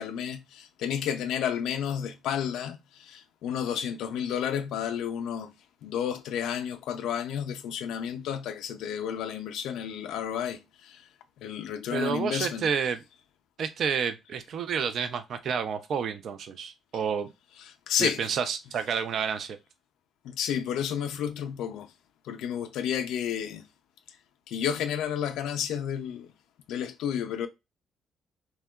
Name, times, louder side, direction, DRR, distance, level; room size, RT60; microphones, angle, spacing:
voice 1, 0.0-5.5 5.8-10.6 10.8-11.0 11.4-12.6 17.9-18.2 20.2-21.9 22.3-23.6 24.5-26.3 26.7-27.5, left 9 dB, 85° left, 0.4 m, -31 dB
voice 2, 11.9-13.0 13.6-17.3 18.0-19.6, right 6 dB, 65° right, 0.4 m, -30 dB
2.8 x 2.2 x 2.2 m
cardioid pair, 90°, 0 cm